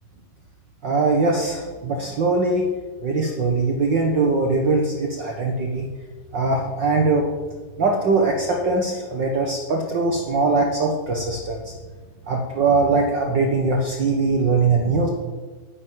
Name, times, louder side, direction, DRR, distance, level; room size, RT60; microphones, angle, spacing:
voice 1, 0.8-2.7 3.0-5.8 6.3-7.2 7.8-11.7 12.3-15.1, right 3 dB, 65° right, 1 dB, 1.1 m, -21 dB
11.5 x 11.0 x 9.1 m, 1.4 s
omnidirectional pair, 4.0 m